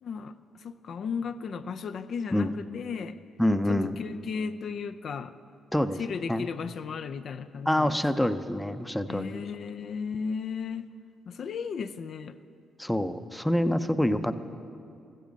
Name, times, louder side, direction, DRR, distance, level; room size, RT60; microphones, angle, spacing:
voice 1, 0.0-3.2 3.7-5.3 6.0-8.3 9.1-10.9 11.3-12.4, left 6 dB, 60° left, 9 dB, 0.4 m, -35 dB
voice 2, 3.4-4.0 5.7-6.0 6.3-6.5 7.7-9.5 12.8-14.3, left 1 dB, 5° left, 10 dB, 0.6 m, -26 dB
14.5 x 14.0 x 5.2 m, 2.5 s
cardioid pair, 90°, 0 cm